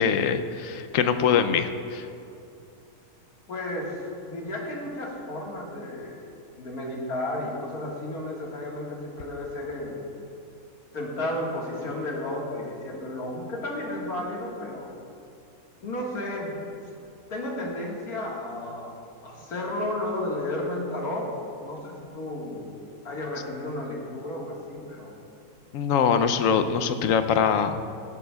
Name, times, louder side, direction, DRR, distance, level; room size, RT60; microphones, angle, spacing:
voice 1, 0.0-2.1 25.7-27.8, left 7 dB, 70° left, 9 dB, 0.9 m, -23 dB
voice 2, 3.5-6.3 6.6-10.0 10.9-14.9 15.8-16.8 17.3-18.9 19.2-21.3 21.6-22.6 23.0-25.1 26.1-26.3, left 1 dB, 85° left, -2 dB, 2.2 m, -33 dB
17.0 x 11.0 x 2.3 m, 2.7 s
omnidirectional pair, 1.6 m